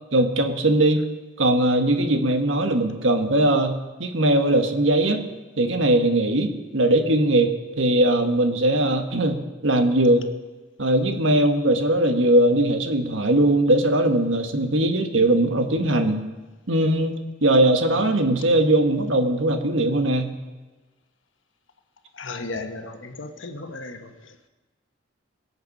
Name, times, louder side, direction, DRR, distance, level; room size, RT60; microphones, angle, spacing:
voice 1, 0.1-1.0 1.4-5.2 5.6-7.5 7.8-10.2 10.8-16.2 16.7-20.4, right 1 dB, 90° right, 6 dB, 1.6 m, -20 dB
voice 2, 22.1-24.5, left 3 dB, 85° left, 7 dB, 1.2 m, -35 dB
23.0 x 7.9 x 5.4 m, 1.2 s
head